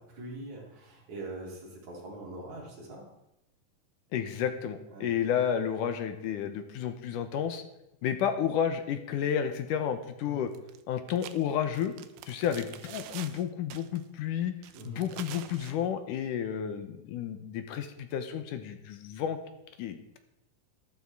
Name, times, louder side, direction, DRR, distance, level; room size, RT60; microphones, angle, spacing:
voice 1, 0.0-3.0 4.9-5.1 10.2-10.4 14.7-15.0, right 2 dB, 55° right, -4 dB, 5.2 m, -43 dB
voice 2, 4.1-7.6 8.0-10.5 10.9-11.9 12.3-14.6 14.9-19.4 19.8-20.2, left 8 dB, 75° left, 9 dB, 2.3 m, -31 dB
sound 1, 10.6-10.8 11.1-13.4 13.7-14.0 14.6-15.8, right 12 dB, 90° right, 2.5 m, -46 dB
13.0 x 12.0 x 4.7 m, 0.89 s
omnidirectional pair, 4.1 m